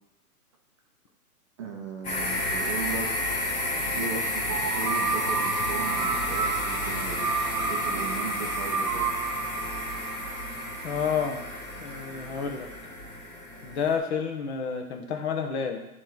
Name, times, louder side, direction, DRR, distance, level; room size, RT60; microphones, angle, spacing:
voice 1, 1.6-3.1 3.9-9.2, right 5 dB, 20° right, 1 dB, 0.5 m, -37 dB
sound 1, 2.0-14.0, left 1 dB, 15° left, 0.7 m, -31 dB
sound 2, 4.5-11.3, right 5 dB, 80° right, 0.7 m, -31 dB
voice 2, 10.8-11.4 11.7-12.7 13.6-15.8, left 6 dB, 45° left, 3 dB, 1.1 m, -29 dB
9.5 x 3.2 x 3.9 m, 0.94 s
hypercardioid pair, 150°, 45 cm